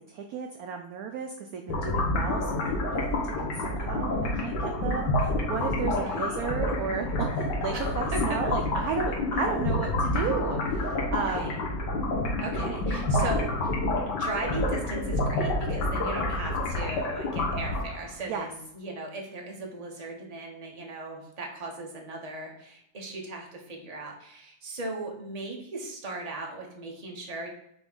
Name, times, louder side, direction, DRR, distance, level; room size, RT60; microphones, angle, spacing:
voice 1, 0.0-11.6 12.5-12.8 13.1-13.3 18.3-18.5, right 6 dB, 75° right, 4 dB, 0.8 m, -34 dB
sound 1, 1.7-18.1, left 2 dB, 65° left, 1.7 m, -28 dB
voice 2, 6.0-6.5 7.7-8.4 11.2-11.6 12.4-13.7 14.1-27.5, right 2 dB, 25° right, 0 dB, 0.9 m, -37 dB
6.0 x 3.1 x 5.2 m, 0.76 s
omnidirectional pair, 2.1 m